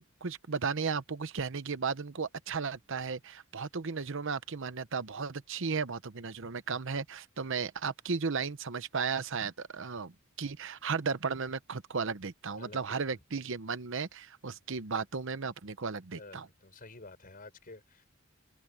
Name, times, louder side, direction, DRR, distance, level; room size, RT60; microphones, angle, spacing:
voice 1, 0.0-10.1 10.4-16.5, right 5 dB, 65° right, 0.9 m, -35 dB
voice 2, 12.6-13.0 16.1-18.1, left 2 dB, 45° left, 5.5 m, -50 dB
head